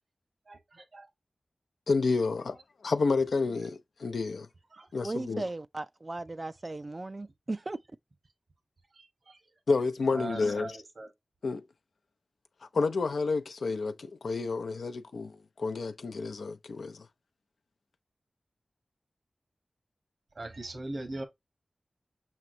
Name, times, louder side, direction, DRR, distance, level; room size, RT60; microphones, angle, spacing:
voice 1, 0.5-1.1 4.7-4.9 8.9-9.5 10.1-11.1 20.3-21.2, right 2 dB, 65° right, 1.2 m, -41 dB
voice 2, 1.9-4.5 4.9-5.4 9.7-10.8 11.4-11.6 12.7-17.1, left 4 dB, 85° left, 0.5 m, -30 dB
voice 3, 5.0-7.8, right 2 dB, 40° right, 0.3 m, -36 dB
5.7 x 3.1 x 2.6 m
cardioid pair, 45°, 0 cm